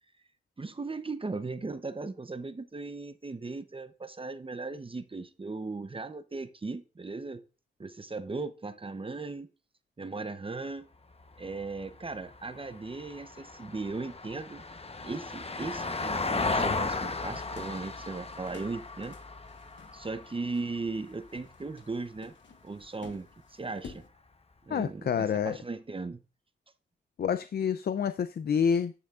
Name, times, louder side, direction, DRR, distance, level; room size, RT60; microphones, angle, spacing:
voice 1, 0.6-7.4 7.8-9.5 10.0-10.9 11.4-14.6 15.0-19.2 19.9-22.3 22.6-24.0 24.7-26.2, right 3 dB, 30° right, 0.7 m, -37 dB
Vehicle, 11.1-21.6 23.9-24.0, left 3 dB, 35° left, 0.9 m, -36 dB
sound 1, 16.9-24.1, left 5 dB, 80° left, 1.1 m, -54 dB
voice 2, 24.7-25.6 27.2-28.9, left 7 dB, 60° left, 0.5 m, -28 dB
9.8 x 9.0 x 2.4 m
cardioid pair, 55°, 19 cm